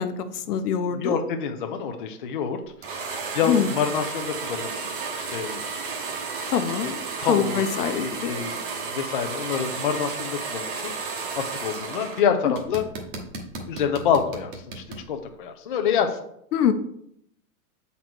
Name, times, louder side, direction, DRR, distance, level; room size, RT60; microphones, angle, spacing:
voice 1, 0.0-1.2 3.5-3.7 6.5-7.0 7.3-8.3 16.5-16.7, left 8 dB, 90° left, 10 dB, 0.9 m, -24 dB
voice 2, 0.9-2.9 3.3-4.8 5.1-5.6 7.2-10.9 11.4-12.9 13.7-16.2, left 7 dB, 35° left, 5 dB, 0.4 m, -27 dB
sound 1, 2.8-12.2 12.5-15.0, right 4 dB, 35° right, 0.9 m, -33 dB
7.4 x 4.0 x 4.4 m, 0.73 s
supercardioid pair, 180°, 45 cm